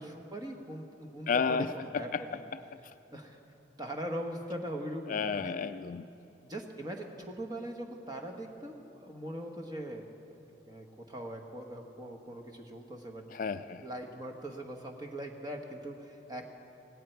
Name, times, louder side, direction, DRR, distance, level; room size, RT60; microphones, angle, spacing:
voice 1, 0.0-2.4 3.1-3.4 3.8-5.5 6.5-10.1 10.7-13.2 13.8-16.5, right 1 dB, 20° right, 3 dB, 1.3 m, -41 dB
voice 2, 1.3-2.6 5.1-6.1 13.3-13.9, left 5 dB, 45° left, 11 dB, 0.3 m, -32 dB
18.0 x 17.0 x 4.6 m, 2.8 s
head